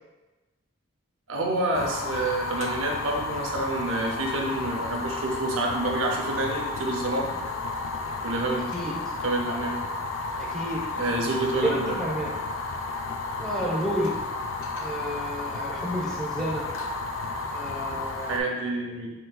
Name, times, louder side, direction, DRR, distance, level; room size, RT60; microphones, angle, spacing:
voice 1, 1.3-7.3 8.2-8.7 9.1-9.8 11.0-12.0 18.2-19.1, right 2 dB, 90° right, 0 dB, 0.6 m, -28 dB
Fire, 1.7-18.4, left 3 dB, 80° left, 0.4 m, -32 dB
voice 2, 10.4-10.8 11.6-12.3 13.4-14.1 14.8-16.6 17.5-18.5, equal, 5° left, -4 dB, 0.7 m, -30 dB
4.1 x 3.9 x 2.3 m, 1.2 s
head